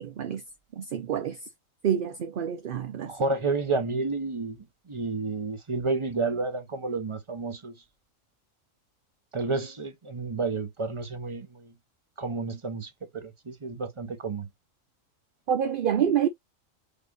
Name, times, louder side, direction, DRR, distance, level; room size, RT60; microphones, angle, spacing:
voice 1, 0.8-1.4 1.8-3.1 15.5-16.3, right 9 dB, 55° right, 0.7 m, -27 dB
voice 2, 3.0-7.7 9.3-11.7 12.2-14.5, right 3 dB, 25° right, 1.0 m, -31 dB
5.3 x 2.6 x 3.8 m
omnidirectional pair, 1.4 m